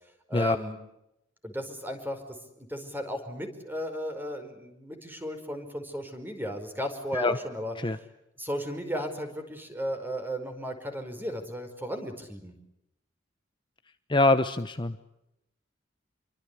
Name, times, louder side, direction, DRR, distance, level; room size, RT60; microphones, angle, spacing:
voice 1, 0.3-0.8 1.4-2.2 2.6-8.1 8.4-12.6, equal, 10° right, 7 dB, 5.0 m, -35 dB
voice 2, 14.1-15.2, left 2 dB, 25° left, 9 dB, 0.9 m, -24 dB
28.0 x 24.0 x 8.4 m, 0.86 s
head